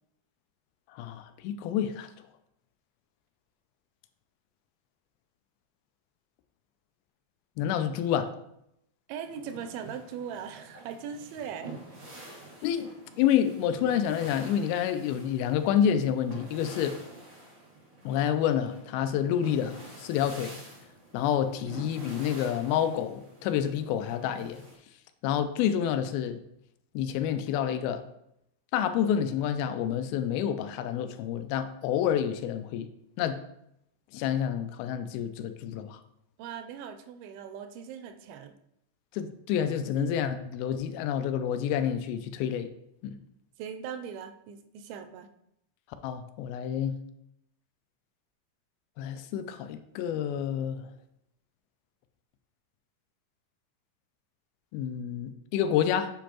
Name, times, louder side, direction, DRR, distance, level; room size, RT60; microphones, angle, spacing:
voice 1, 0.9-2.1 7.6-8.3 12.6-12.9 13.2-17.0 18.1-20.5 21.1-24.6 25.2-26.4 27.0-28.0 28.7-32.9 33.2-33.4 34.1-36.0 39.1-42.7 43.0-43.1 46.0-47.0 49.0-50.8 54.7-56.1, left 9 dB, 90° left, 9 dB, 2.5 m, -28 dB
voice 2, 9.1-11.8 36.4-38.5 40.0-40.1 43.6-45.3, right 7 dB, 85° right, 8 dB, 2.5 m, -39 dB
sound 1, 9.2-24.7, right 2 dB, 55° right, 0.7 m, -47 dB
7.3 x 5.1 x 3.0 m, 0.77 s
omnidirectional pair, 4.3 m